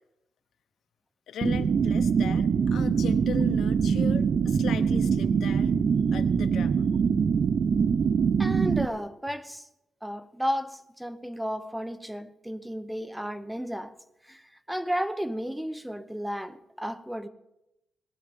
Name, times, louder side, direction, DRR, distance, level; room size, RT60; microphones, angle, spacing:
voice 1, 1.3-5.7 6.1-6.9, left 8 dB, 75° left, 0.9 m, -38 dB
sound 1, 1.4-8.8, right 6 dB, 45° right, 0.5 m, -24 dB
voice 2, 8.4-9.7 10.0-13.9 14.2-17.3, equal, 5° right, 0.7 m, -33 dB
18.5 x 10.5 x 5.3 m
cardioid pair, 145°, 0 cm